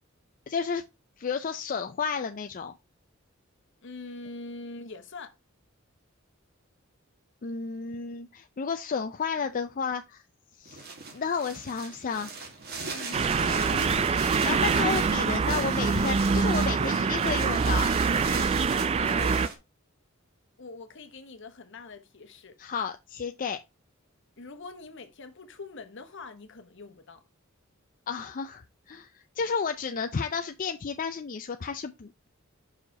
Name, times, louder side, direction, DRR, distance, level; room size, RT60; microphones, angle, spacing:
voice 1, 0.5-0.8 1.2-2.7 7.4-10.2 10.6-10.8 11.1-12.3 13.3-14.1 14.4-17.9 22.6-23.6 28.1-32.3, left 5 dB, 40° left, 0.5 m, -32 dB
voice 2, 3.8-5.4 12.8-13.6 18.9-19.6 20.6-22.6 24.4-27.2, left 3 dB, 65° left, 1.1 m, -43 dB
sound 1, 10.6-19.5, right 4 dB, 50° right, 1.8 m, -38 dB
sound 2, 13.1-19.5, right 5 dB, 30° right, 0.3 m, -25 dB
5.8 x 4.9 x 4.7 m
head